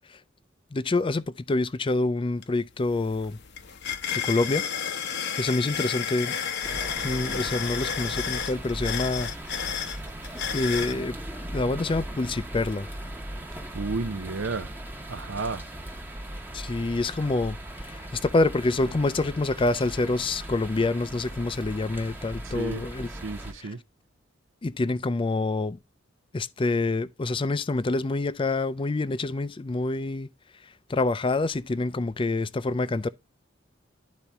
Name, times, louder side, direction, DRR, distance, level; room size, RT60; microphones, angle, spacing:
voice 1, 0.7-3.4 4.2-4.7 5.4-6.4 7.0-9.3 10.5-11.2 11.5-12.9 16.5-23.1 24.6-25.8 26.3-30.3 30.6-33.1, left 2 dB, 25° left, 0.4 m, -27 dB
sound 1, 2.4-2.5 2.8-11.0, left 8 dB, 60° left, 0.9 m, -32 dB
sound 2, 6.6-23.5, right 1 dB, 10° right, 0.9 m, -38 dB
voice 2, 13.5-14.7 15.1-15.7 22.4-22.8 23.1-23.8, right 3 dB, 70° right, 0.7 m, -32 dB
11.5 x 4.2 x 3.4 m
head